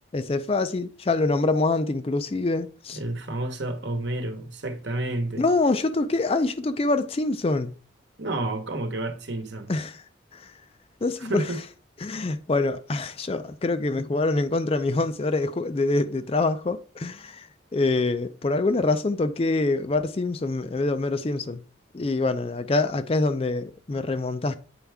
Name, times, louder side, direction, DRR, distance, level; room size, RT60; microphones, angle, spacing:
voice 1, 0.1-3.0 5.4-7.7 9.7-10.0 10.3-10.6 11.0-11.6 12.0-21.6 21.9-24.6, left 2 dB, 30° left, 0.4 m, -25 dB
voice 2, 3.0-5.4 8.2-9.7 11.2-11.6, right 2 dB, 60° right, 1.1 m, -30 dB
8.6 x 4.5 x 3.5 m
head